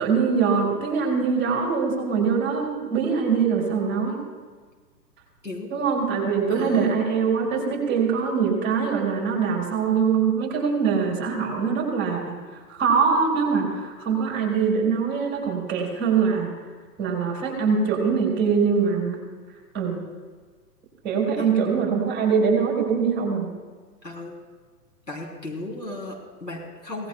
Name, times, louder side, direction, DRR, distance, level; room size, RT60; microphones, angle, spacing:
voice 1, 0.0-4.2 5.7-12.3 12.7-16.5 17.0-19.2 19.7-20.0 21.0-23.5, right 6 dB, 20° right, -2 dB, 4.9 m, -23 dB
voice 2, 6.5-7.0 21.3-21.5 24.0-24.4 25.1-27.1, left 2 dB, 90° left, -2 dB, 3.8 m, -35 dB
24.0 x 18.0 x 2.3 m, 1.4 s
figure-of-eight pair, 120°, 49 cm